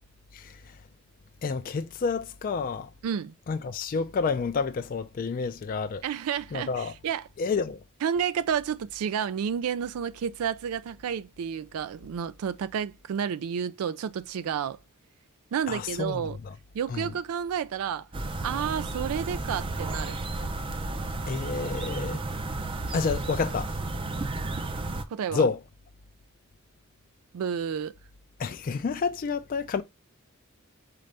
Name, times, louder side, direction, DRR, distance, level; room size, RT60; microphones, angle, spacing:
voice 1, 0.3-0.8 1.4-2.9 3.5-6.0 6.5-6.9 7.4-7.8 15.7-16.5 16.9-17.1 21.3-22.2 22.9-23.7 25.3-25.6 28.4-29.8, left 5 dB, 40° left, 0.3 m, -29 dB
voice 2, 3.0-3.3 6.0-7.2 8.0-14.8 15.5-16.4 16.7-18.1 18.4-20.2 25.1-25.4 27.3-27.9, right 8 dB, 85° right, 0.3 m, -30 dB
sound 1, 18.1-25.0, right 2 dB, 25° right, 0.4 m, -32 dB
4.3 x 3.8 x 3.2 m
head